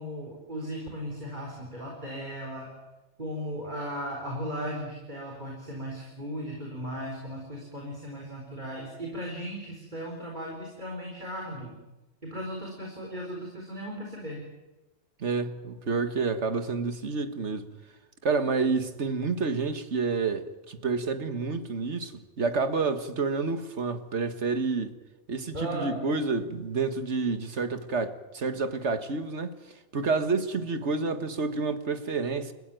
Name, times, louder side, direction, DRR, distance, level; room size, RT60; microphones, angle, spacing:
voice 1, 0.0-2.7 3.2-11.8 12.2-14.4 25.5-26.1, equal, 40° right, 4.5 m, -36 dB
voice 2, 15.2-17.7 18.2-24.9 25.3-29.5 29.9-32.5, right 4 dB, 70° right, 1.9 m, -29 dB
30.0 x 15.0 x 9.2 m
omnidirectional pair, 1.2 m